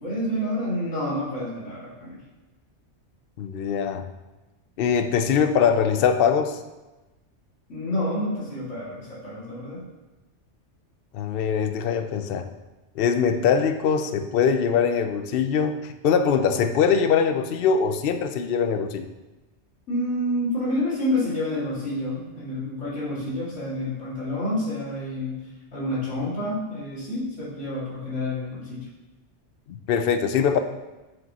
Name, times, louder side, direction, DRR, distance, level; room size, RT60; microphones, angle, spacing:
voice 1, 0.0-2.2 7.7-9.9 19.9-25.5 25.7-28.9, left 1 dB, 90° left, -8 dB, 2.5 m, -28 dB
voice 2, 3.4-4.0 4.8-6.6 11.1-12.5 13.0-19.0 29.7-30.6, left 6 dB, 60° left, 8 dB, 0.7 m, -22 dB
8.7 x 6.7 x 2.8 m, 1.1 s
omnidirectional pair, 1.2 m